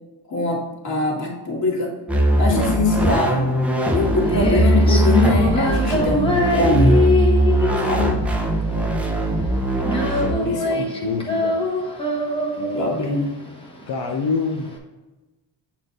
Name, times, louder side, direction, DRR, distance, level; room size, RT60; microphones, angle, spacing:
voice 1, 0.3-1.9 2.4-3.4 3.9-7.0 7.8-8.1 10.5-10.8 12.7-13.3, left 2 dB, 40° left, -4 dB, 2.0 m, -22 dB
sound 1, 2.1-10.3, right 1 dB, 5° right, 0.8 m, -20 dB
Female singing, 4.0-14.8, left 2 dB, 10° left, 1.1 m, -24 dB
voice 2, 8.7-9.1 10.0-11.6 12.6-13.0 13.9-14.7, left 5 dB, 60° left, 1 dB, 0.8 m, -28 dB
7.9 x 4.3 x 3.9 m, 1.1 s
cardioid pair, 155°, 44 cm